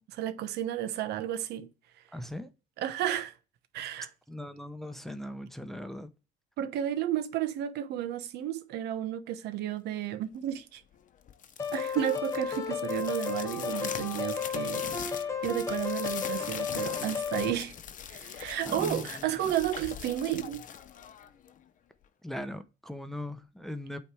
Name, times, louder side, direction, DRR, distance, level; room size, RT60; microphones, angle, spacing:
voice 1, 0.0-1.7 2.8-3.3 3.7-4.1 6.6-10.8 11.7-14.9 15.4-17.7 18.1-20.6, right 11 dB, 80° right, 1.0 m, -32 dB
voice 2, 2.1-2.5 4.3-6.1 18.6-19.4 22.2-24.0, left 1 dB, ahead, 0.8 m, -39 dB
sound 1, 11.3-21.6, left 8 dB, 50° left, 0.9 m, -42 dB
sound 2, 11.6-17.5, left 6 dB, 15° left, 1.4 m, -33 dB
8.8 x 3.3 x 4.6 m
cardioid pair, 110°, 17 cm